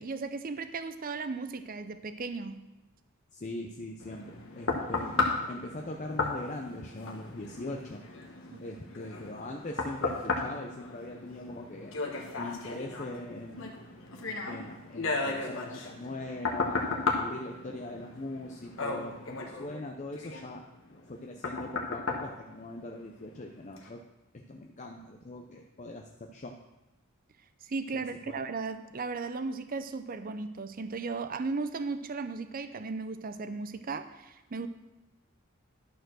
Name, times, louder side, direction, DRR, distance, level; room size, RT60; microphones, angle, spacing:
voice 1, 0.0-2.7 8.5-8.6 27.6-34.7, right 4 dB, 40° right, 10 dB, 0.5 m, -36 dB
voice 2, 3.3-8.0 8.6-11.9 12.4-13.7 14.1-20.6 20.9-24.0 24.3-26.6 27.9-28.4, left 2 dB, 35° left, 2 dB, 0.6 m, -41 dB
sound 1, 4.0-23.3 23.8-23.9, left 3 dB, 65° left, 1.3 m, -35 dB
11.5 x 4.5 x 6.2 m, 1.0 s
head